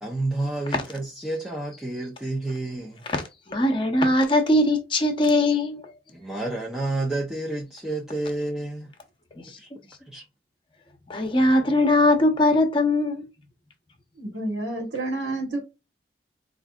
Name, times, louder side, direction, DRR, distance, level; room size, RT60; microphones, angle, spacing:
voice 1, 0.0-3.0 6.1-8.9 9.6-9.7 10.1-10.2, right 2 dB, 5° right, 0.6 m, -30 dB
voice 2, 3.1-5.9 9.4-9.6 11.1-13.3, left 1 dB, 30° left, 0.9 m, -21 dB
voice 3, 14.2-15.6, right 2 dB, 85° right, 1.3 m, -29 dB
4.6 x 2.6 x 2.3 m
head